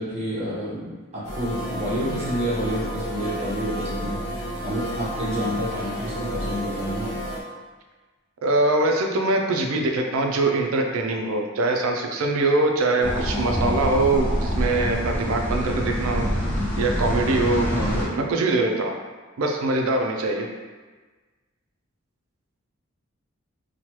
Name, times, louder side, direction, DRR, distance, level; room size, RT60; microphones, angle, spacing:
voice 1, 0.0-4.2 4.6-7.1 17.7-17.9, equal, 30° right, -9 dB, 0.9 m, -29 dB
sound 1, 1.2-7.4, equal, 90° left, 0.6 m, -31 dB
voice 2, 8.4-16.3 16.8-19.0 19.4-20.5, right 2 dB, 75° right, 2 dB, 0.4 m, -23 dB
sound 2, 13.0-18.0, equal, 5° left, 0.6 m, -26 dB
3.0 x 2.2 x 2.9 m, 1.4 s
head